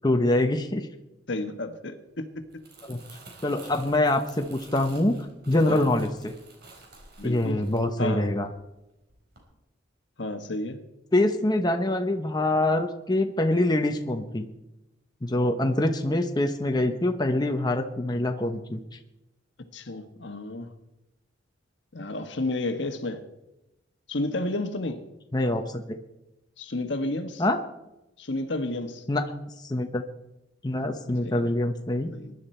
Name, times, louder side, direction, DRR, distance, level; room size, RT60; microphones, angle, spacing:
voice 1, 0.0-0.9 2.9-3.0 3.4-5.2 5.5-6.4 7.2-8.5 11.1-14.5 15.2-18.8 25.3-25.8 27.4-27.6 29.1-29.3 29.6-30.0 30.6-32.1, left 1 dB, 20° left, 5 dB, 0.9 m, -25 dB
voice 2, 1.3-2.3 5.7-5.9 7.2-7.6 8.0-8.3 10.2-10.8 15.6-15.7 19.7-20.7 21.9-23.2 24.1-25.0 26.6-27.4 28.2-29.0 31.2-31.5 32.1-32.3, left 2 dB, 65° left, 8 dB, 1.4 m, -31 dB
Crumpling crinkling, 2.4-8.7 9.1-9.4, right 3 dB, 55° right, 4.3 m, -51 dB
22.0 x 11.0 x 4.4 m, 0.94 s
head